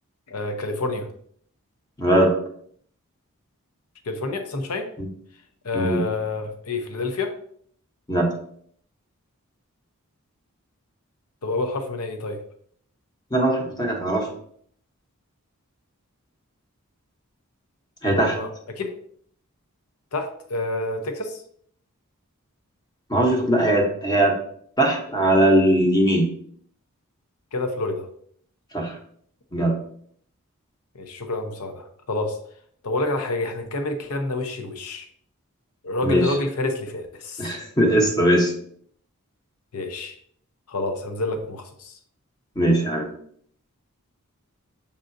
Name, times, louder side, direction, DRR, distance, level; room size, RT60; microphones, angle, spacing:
voice 1, 0.3-1.1 4.0-4.9 5.6-7.4 11.4-12.4 18.2-18.9 20.1-21.4 27.5-28.1 30.9-32.4 32.8-35.1 35.8-37.5 39.7-40.2 40.7-42.0, left 2 dB, 80° left, 6 dB, 0.7 m, -28 dB
voice 2, 2.0-2.3 5.7-6.0 8.1-8.3 13.3-14.3 18.0-18.4 23.1-24.3 24.8-26.3 28.7-29.0 29.5-29.8 36.0-36.3 37.4-38.5 42.6-43.1, right 1 dB, 20° left, 0 dB, 0.8 m, -20 dB
5.5 x 3.7 x 2.5 m, 0.62 s
head